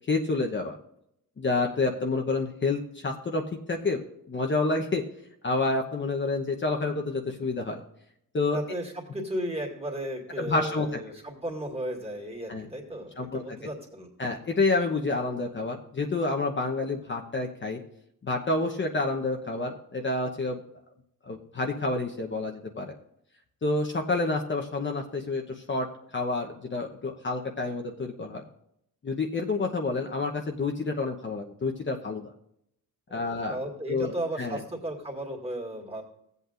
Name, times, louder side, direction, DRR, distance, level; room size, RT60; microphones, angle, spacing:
voice 1, 0.1-0.8 1.4-4.0 4.3-5.1 5.4-7.8 8.3-8.6 10.4-11.0 12.5-12.7 13.2-13.4 14.2-17.8 18.2-20.6 21.3-22.9 23.6-25.9 26.1-28.4 29.0-32.3 33.1-33.6 33.9-34.1 34.4-34.6, left 3 dB, 35° left, 2 dB, 0.9 m, -28 dB
voice 2, 8.5-14.1 33.1-36.0, right 1 dB, 15° right, 0 dB, 2.2 m, -35 dB
16.0 x 8.1 x 2.5 m, 0.76 s
cardioid pair, 115°, 34 cm